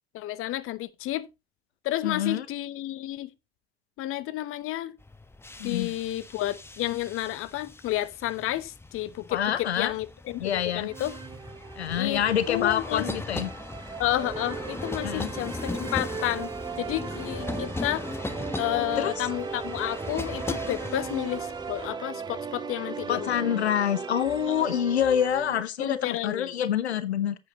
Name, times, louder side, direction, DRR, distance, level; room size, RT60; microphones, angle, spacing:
voice 1, 0.1-1.3 1.8-3.3 4.0-4.9 5.6-11.1 11.9-12.2 12.5-13.1 14.0-16.5 16.8-18.1 18.6-23.7 24.5-24.7 25.8-26.5, left 14 dB, 40° left, 1.0 m, -31 dB
voice 2, 2.0-2.5 5.6-5.9 9.3-9.9 10.4-10.9 11.8-13.5 15.0-15.3 18.7-19.3 23.1-27.4, left 9 dB, 80° left, 0.7 m, -27 dB
sound 1, 5.0-21.9, left 2 dB, 5° left, 1.2 m, -38 dB
sound 2, 10.9-25.6, right 6 dB, 15° right, 0.5 m, -37 dB
10.5 x 8.3 x 2.9 m
figure-of-eight pair, 75°, 32 cm